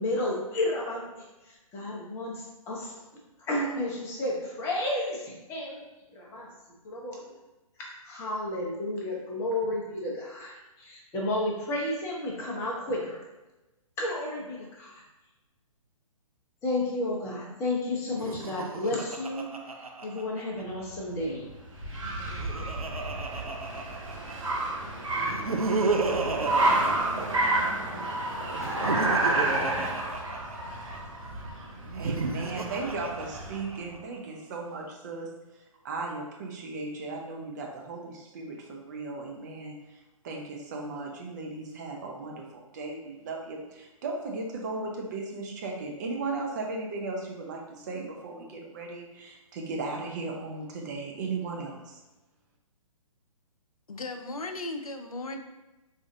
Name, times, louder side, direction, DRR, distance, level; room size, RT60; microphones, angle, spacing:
voice 1, 0.0-2.9 3.4-5.8 6.1-6.5 6.8-7.4 7.8-13.2 14.0-15.0 16.6-19.5 20.0-21.5, left 1 dB, 15° left, -3 dB, 0.6 m, -32 dB
Laughter, 18.1-20.8 21.9-24.5 25.2-27.9 28.5-31.0 31.8-34.0, right 3 dB, 85° right, 0.4 m, -33 dB
Car, 20.8-33.7, right 2 dB, 60° right, 1.0 m, -30 dB
voice 2, 31.9-35.4 35.8-39.8 40.2-52.0, right 3 dB, 30° right, 0 dB, 0.5 m, -36 dB
voice 3, 53.9-55.4, left 2 dB, 80° left, 6 dB, 0.4 m, -36 dB
3.9 x 2.4 x 2.6 m, 1.1 s
figure-of-eight pair, 125°, 18 cm